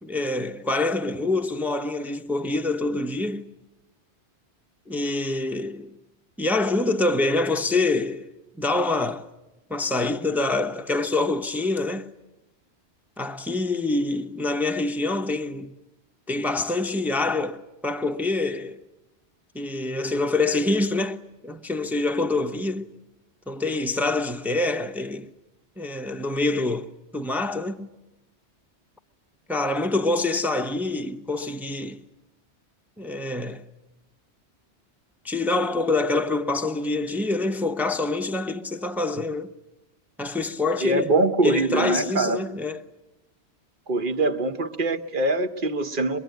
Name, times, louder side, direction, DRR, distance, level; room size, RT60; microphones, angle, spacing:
voice 1, 0.0-3.5 4.9-5.9 6.4-8.3 8.6-9.3 9.7-12.1 13.2-15.7 16.3-18.8 19.5-22.9 23.5-25.3 25.8-27.9 29.5-32.0 33.0-33.6 35.2-39.5 40.2-41.1 41.4-42.8, left 2 dB, ahead, 0.7 m, -26 dB
voice 2, 40.8-42.4 43.9-46.2, right 2 dB, 50° right, 1.2 m, -23 dB
23.5 x 23.0 x 9.2 m
omnidirectional pair, 1.2 m